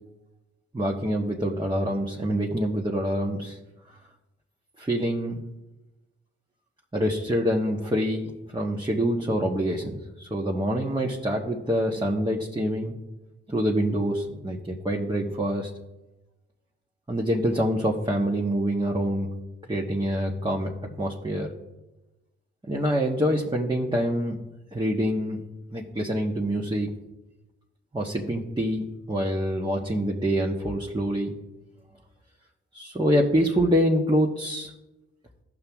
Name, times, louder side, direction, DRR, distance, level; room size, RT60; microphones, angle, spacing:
voice 1, 0.7-3.6 4.8-5.4 6.9-12.9 13.5-15.7 17.1-19.3 19.7-20.7 21.0-21.5 22.7-24.4 24.7-25.4 25.7-26.9 27.9-31.3 32.7-34.7, equal, 15° right, -1 dB, 1.3 m, -26 dB
14.5 x 5.7 x 3.6 m, 1.0 s
supercardioid pair, 40°, 29 cm